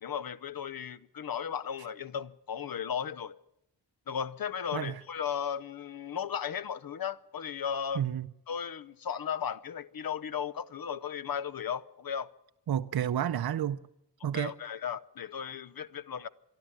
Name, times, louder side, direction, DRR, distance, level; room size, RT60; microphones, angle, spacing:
voice 1, 0.0-3.4 4.1-8.0 8.5-12.3 14.3-16.3, left 8 dB, 55° left, 0.8 m, -35 dB
voice 2, 7.9-8.3 12.7-13.8 14.2-14.5, right 10 dB, 60° right, 0.7 m, -30 dB
26.0 x 11.5 x 8.7 m
wide cardioid pair, 135°, 42 cm